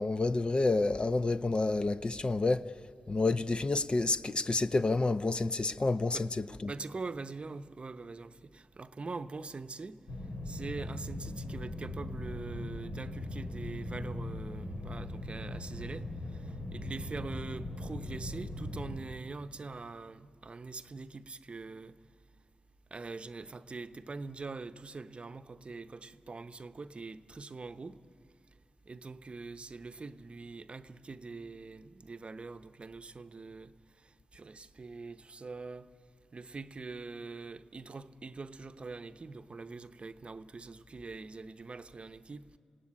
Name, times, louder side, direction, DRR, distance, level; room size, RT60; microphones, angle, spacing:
voice 1, 0.0-2.6 3.1-6.7, left 3 dB, 40° left, 0.7 m, -29 dB
voice 2, 6.7-10.0 10.5-16.1 16.3-22.0 22.9-28.0 28.9-33.7 34.3-35.9 36.3-42.4, right 3 dB, 45° right, 0.8 m, -43 dB
sound 1, 10.1-19.0, left 1 dB, 85° left, 3.0 m, -40 dB
26.5 x 17.5 x 9.7 m
cardioid pair, 60°, 3 cm